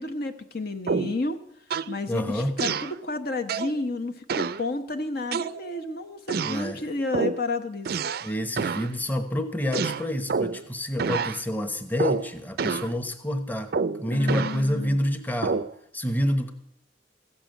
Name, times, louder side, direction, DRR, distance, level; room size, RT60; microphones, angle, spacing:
voice 1, 0.0-1.4 1.9-8.0 14.1-15.0, left 3 dB, 60° left, 7 dB, 1.0 m, -31 dB
sound 1, 0.9-1.2 1.7-2.0 2.6-2.9 3.5-3.8 4.3-4.6 5.3-5.8 6.3-6.7 7.1-7.4 7.8-8.3 8.6-8.9 9.7-10.6 11.0-11.4 12.0-12.3 12.6-12.9 13.7-14.6 15.4-15.7, right 5 dB, 60° right, 0.5 m, -28 dB
voice 2, 2.1-2.5 6.4-6.8 8.2-13.7 14.0-15.7 15.9-16.5, equal, 10° left, 7 dB, 1.0 m, -28 dB
15.0 x 6.9 x 9.1 m, 0.74 s
head